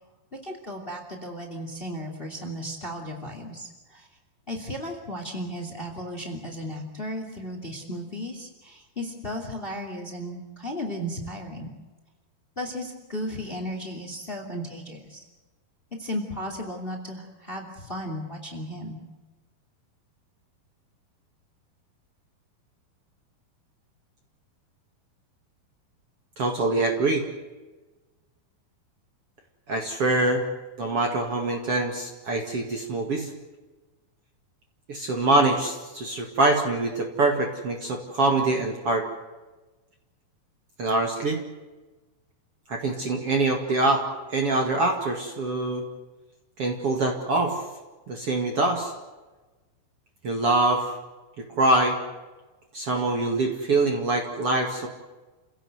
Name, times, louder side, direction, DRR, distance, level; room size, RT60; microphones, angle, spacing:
voice 1, 0.4-4.1 4.5-11.7 12.6-15.2 16.0-19.0, equal, 15° left, 4 dB, 2.5 m, -35 dB
voice 2, 26.4-27.3 29.7-30.4 30.8-33.3 34.9-39.0 40.8-41.4 42.7-44.0 44.3-45.8 46.6-47.6 48.1-48.9 50.2-50.9 51.4-52.0 52.7-54.9, right 2 dB, 45° right, 2 dB, 2.6 m, -24 dB
29.5 x 17.0 x 8.0 m, 1.2 s
omnidirectional pair, 4.4 m